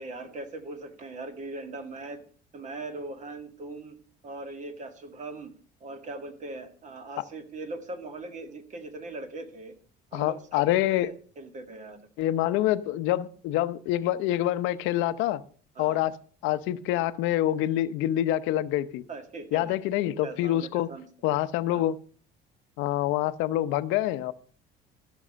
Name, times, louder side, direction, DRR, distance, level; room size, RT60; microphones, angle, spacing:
voice 1, 0.0-2.2 2.5-4.0 4.2-5.5 5.8-9.7 10.1-10.6 11.0-12.0 12.6-12.7 15.8-16.1 19.1-19.8 20.2-21.1 21.7-21.8, right 2 dB, 40° right, 8 dB, 2.0 m, -40 dB
voice 2, 10.1-11.1 12.2-15.4 15.8-16.2 16.4-19.0 19.5-20.9 21.2-22.0 22.8-24.3, left 13 dB, 85° left, 13 dB, 0.8 m, -26 dB
13.5 x 6.3 x 6.2 m, 0.42 s
cardioid pair, 135°, 20 cm